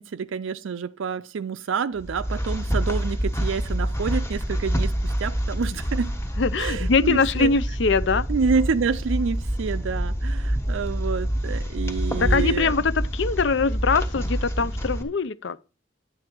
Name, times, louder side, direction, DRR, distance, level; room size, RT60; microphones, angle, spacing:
voice 1, 0.0-6.1 6.6-7.5 8.3-12.7, right 5 dB, 75° right, 0.4 m, -28 dB
sound 1, 2.0-15.0, equal, 15° left, 1.3 m, -27 dB
voice 2, 6.4-8.3 12.2-15.6, left 4 dB, 65° left, 0.5 m, -23 dB
10.5 x 8.7 x 4.5 m
head